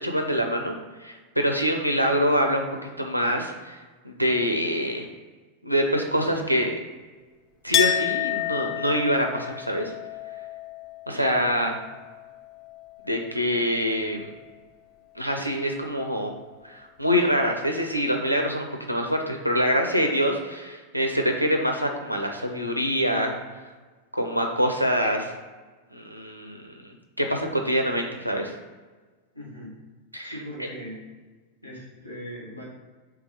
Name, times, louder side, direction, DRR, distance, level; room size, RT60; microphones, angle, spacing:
voice 1, 0.0-0.7 1.0-2.6 3.0-3.8 4.0-5.1 5.6-6.7 7.6-9.9 11.1-11.7 13.0-14.3 15.2-16.3 16.6-23.4 24.1-25.3 25.9-28.5 30.1-30.7, equal, 90° right, 3 dB, 0.4 m, -25 dB
Chink clink, 7.7-13.3 13.5-14.4, left 11 dB, 35° left, 0.4 m, -30 dB
voice 2, 11.3-11.7 29.3-29.8 30.2-31.0 31.6-32.6, equal, 80° left, -4 dB, 1.4 m, -40 dB
3.4 x 3.2 x 4.6 m, 1.3 s
figure-of-eight pair, 90°, 0 cm